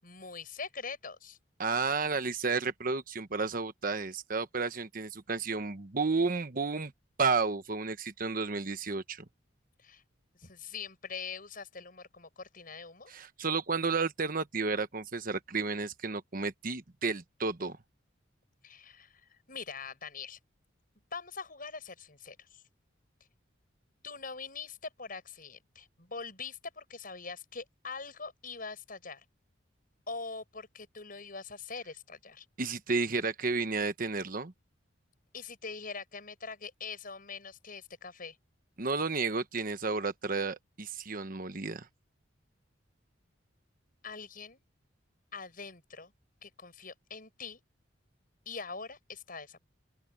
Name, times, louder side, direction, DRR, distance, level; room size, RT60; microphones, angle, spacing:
voice 1, 0.0-1.4 9.8-10.0 10.3-13.1 18.6-20.4 21.1-22.6 24.0-29.2 30.1-32.5 35.3-38.4 44.0-44.6 45.3-46.1 46.4-47.6 48.5-49.6, left 4 dB, 50° left, 7.0 m, -43 dB
voice 2, 1.6-6.9 7.2-9.2 13.1-17.8 32.6-34.5 38.8-41.9, right 4 dB, 45° right, 1.1 m, -32 dB
open air
head